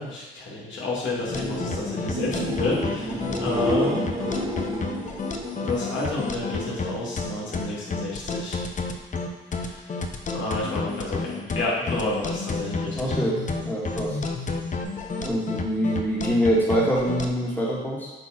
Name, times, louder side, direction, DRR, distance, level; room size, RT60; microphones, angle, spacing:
voice 1, 0.0-4.0 5.6-8.6 9.6-9.8 10.3-13.1, left 2 dB, 70° left, -6 dB, 2.6 m, -30 dB
sound 1, 1.1-6.8 7.2-7.8 14.8-14.9, right 1 dB, 20° right, 1.2 m, -31 dB
sound 2, 1.3-17.3, left 4 dB, 40° left, 0.8 m, -30 dB
voice 2, 12.9-13.4 13.6-14.2 15.2-18.1, equal, 10° left, -4 dB, 1.9 m, -24 dB
7.8 x 4.7 x 4.5 m, 1.1 s
cardioid pair, 90°, 20 cm